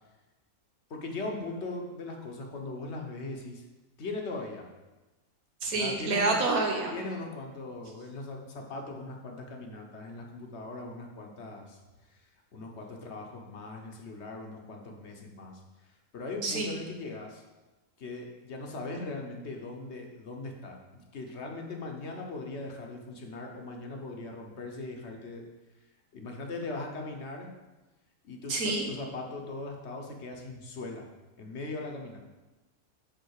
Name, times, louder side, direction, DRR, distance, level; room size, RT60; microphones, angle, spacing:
voice 1, 0.9-3.6 4.0-4.7 5.7-6.4 6.9-11.8 12.1-12.3 12.5-15.6 15.9-17.4 18.0-25.4 26.1-27.5 28.2-31.1 31.4-32.2, left 2 dB, 50° left, 1 dB, 1.3 m, -39 dB
voice 2, 5.6-7.0 16.4-16.7 28.5-28.9, right 3 dB, 70° right, 1 dB, 1.6 m, -28 dB
8.0 x 3.7 x 6.5 m, 1.1 s
omnidirectional pair, 1.6 m